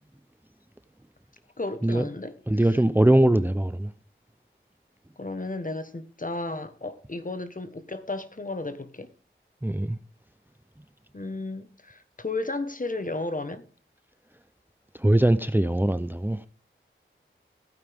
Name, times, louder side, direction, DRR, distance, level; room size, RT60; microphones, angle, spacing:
voice 1, 1.6-2.3 5.2-9.1 11.1-13.7, left 2 dB, 40° left, 1.4 m, -33 dB
voice 2, 2.5-3.9 9.6-10.0 15.0-16.5, right 1 dB, 10° right, 0.6 m, -21 dB
15.0 x 9.1 x 3.6 m
wide cardioid pair, 45°, 21 cm